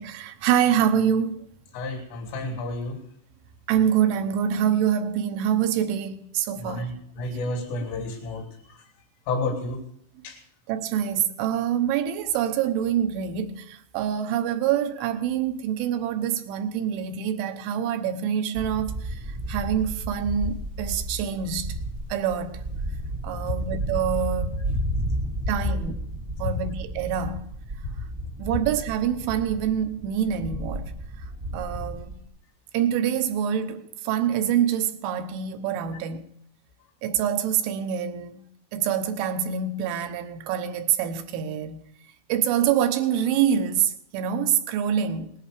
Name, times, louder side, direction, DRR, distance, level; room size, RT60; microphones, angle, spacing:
voice 1, 0.0-1.5 3.7-6.9 10.7-21.8 22.1-22.6 23.2-24.9 25.5-26.0 26.4-27.4 28.4-30.9 31.2-31.3 31.5-32.2 32.7-36.2 37.0-41.8 42.3-45.3, right 9 dB, 80° right, 3.3 m, -26 dB
voice 2, 1.7-3.0 6.6-8.8 9.3-9.8 10.2-10.4, left 2 dB, 80° left, 5.0 m, -31 dB
sound 1, 18.5-32.2, right 1 dB, 60° right, 0.8 m, -33 dB
19.0 x 11.0 x 5.0 m
omnidirectional pair, 5.7 m